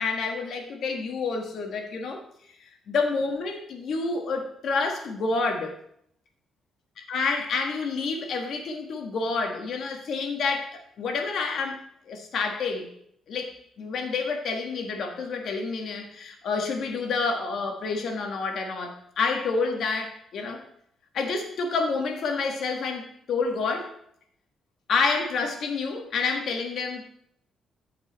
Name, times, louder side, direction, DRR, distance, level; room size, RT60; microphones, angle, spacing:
voice 1, 0.0-2.2 2.9-5.8 7.0-11.8 12.1-12.9 13.3-20.6 21.1-23.9 24.9-27.1, left 4 dB, 60° left, 3 dB, 1.8 m, -28 dB
14.0 x 5.4 x 4.2 m, 0.69 s
cardioid pair, 120°, 0 cm